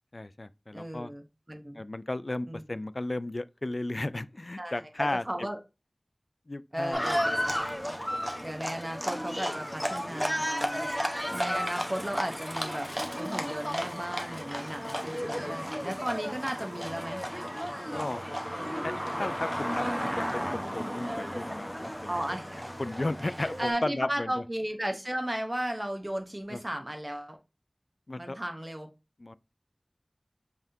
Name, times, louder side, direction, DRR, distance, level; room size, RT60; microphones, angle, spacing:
voice 1, 0.1-1.1 1.8-5.2 6.5-7.4 8.2-8.3 15.2-15.3 17.9-18.2 18.8-22.1 22.8-24.3 26.5-26.6 28.1-28.4 29.2-29.4, left 2 dB, 65° left, 0.3 m, -34 dB
voice 2, 0.7-1.8 2.5-2.6 4.6-5.6 6.7-7.6 8.4-10.9 11.3-12.9 13.2-17.2 22.1-22.7 23.2-27.4 28.2-28.9, right 1 dB, 35° right, 0.8 m, -35 dB
Livestock farm animals working animals, 6.9-23.7, equal, 5° right, 1.0 m, -33 dB
5.6 x 3.5 x 2.7 m
wide cardioid pair, 40°, 0 cm